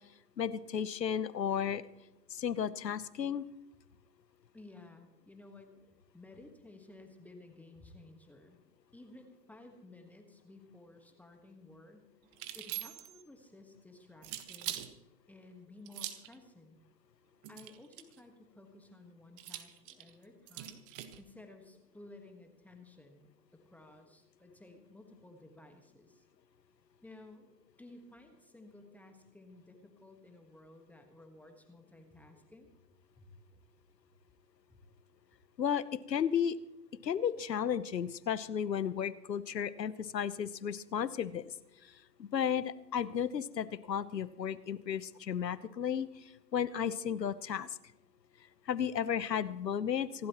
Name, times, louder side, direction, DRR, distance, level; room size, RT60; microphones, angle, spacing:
voice 1, 0.4-1.8 2.3-3.4 35.6-36.5 37.0-41.5 42.2-46.1 46.5-47.7 48.7-50.3, left 8 dB, 85° left, 16 dB, 1.1 m, -33 dB
voice 2, 4.5-5.7 6.1-8.6 8.9-12.1 12.5-14.9 15.3-16.8 17.5-20.8 21.2-26.3 27.0-32.7 33.2-33.3 34.7-34.8, left 2 dB, 5° left, 4 dB, 1.4 m, -55 dB
sound 1, 12.3-13.2 14.2-14.9 15.9-16.3 17.4-18.2 19.4-21.2, right 13 dB, 35° right, 1.4 m, -42 dB
26.0 x 12.5 x 3.0 m, 0.98 s
hypercardioid pair, 125°, 48 cm